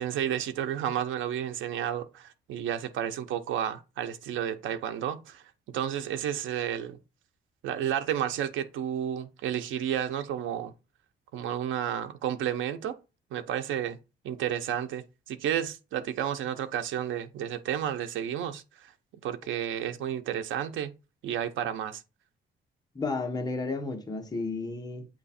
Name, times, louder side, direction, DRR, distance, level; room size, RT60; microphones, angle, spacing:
voice 1, 0.0-5.4 5.7-7.0 7.6-10.7 11.3-13.0 13.3-14.0 14.2-18.9 19.2-20.9 21.2-22.0, right 10 dB, 90° right, 0.8 m, -31 dB
voice 2, 22.9-25.1, left 3 dB, 20° left, 1.2 m, -32 dB
8.3 x 3.1 x 4.2 m
cardioid pair, 150°, 20 cm